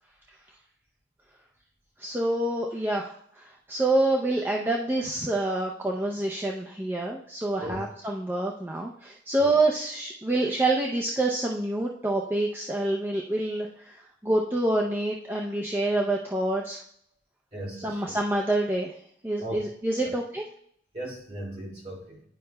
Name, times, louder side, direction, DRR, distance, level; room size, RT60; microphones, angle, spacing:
voice 1, 2.0-16.8 17.8-18.9 19.2-20.5, right 2 dB, 10° right, -1 dB, 0.5 m, -27 dB
voice 2, 17.5-18.2 19.4-19.6 20.0-20.1 20.9-22.2, right 1 dB, 40° right, -3 dB, 2.4 m, -37 dB
10.5 x 5.3 x 2.2 m, 0.65 s
head